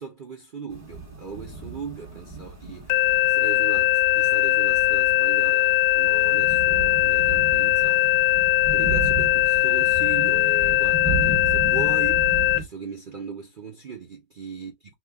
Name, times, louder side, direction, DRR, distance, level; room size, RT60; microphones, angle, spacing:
voice 1, 0.0-8.1 8.7-14.9, right 5 dB, 60° right, 0.5 m, -38 dB
sound 1, 0.7-12.6, right 3 dB, 10° right, 1.1 m, -34 dB
sound 2, 2.9-12.6, left 15 dB, 70° left, 0.9 m, -20 dB
3.0 x 2.4 x 3.4 m
omnidirectional pair, 1.9 m